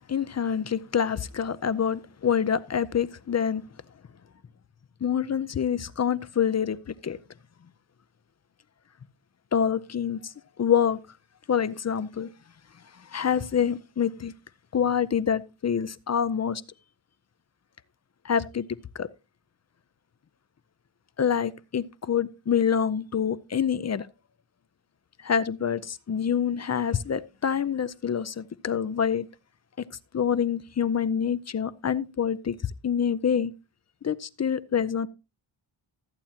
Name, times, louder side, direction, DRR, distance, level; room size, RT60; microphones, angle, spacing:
voice 1, 0.1-3.6 5.0-7.2 9.5-10.3 10.6-11.0 11.5-12.3 13.1-14.3 14.7-16.6 18.2-18.7 18.9-19.1 21.2-24.1 25.2-29.3 30.1-32.6 32.8-33.5 34.0-35.1, left 8 dB, 35° left, 0.5 m, -26 dB
13.5 x 8.7 x 2.8 m
wide cardioid pair, 105°, 49 cm